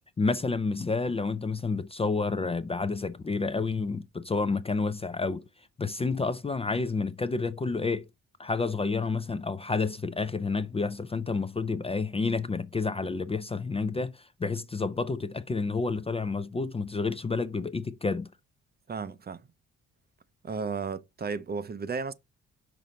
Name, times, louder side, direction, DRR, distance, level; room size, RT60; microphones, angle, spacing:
voice 1, 0.2-5.4 5.8-8.1 8.4-18.3, left 4 dB, 20° left, 0.5 m, -29 dB
voice 2, 18.9-19.5 20.4-22.1, right 5 dB, 30° right, 0.7 m, -34 dB
5.9 x 4.0 x 5.0 m
cardioid pair, 90°, 30 cm